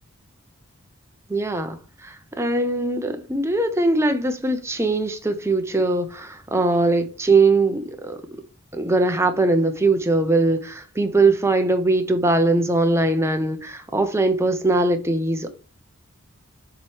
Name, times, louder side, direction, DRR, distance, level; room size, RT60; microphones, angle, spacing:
voice 1, 1.3-1.8 2.0-8.2 8.7-15.5, right 2 dB, 10° right, 0.7 m, -21 dB
7.2 x 3.2 x 4.7 m
head